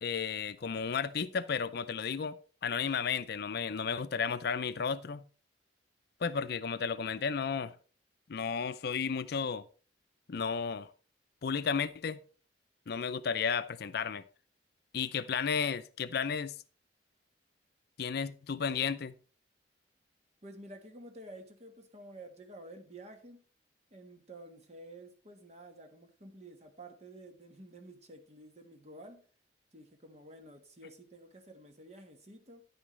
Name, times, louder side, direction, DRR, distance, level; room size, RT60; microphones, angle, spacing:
voice 1, 0.0-5.2 6.2-7.7 8.3-9.6 10.3-10.9 11.4-12.2 12.9-14.2 14.9-16.6 18.0-19.1, left 6 dB, 55° left, 0.5 m, -33 dB
voice 2, 20.4-23.4 23.9-29.3 29.7-32.7, right 1 dB, 35° right, 1.4 m, -51 dB
10.0 x 9.8 x 3.2 m
head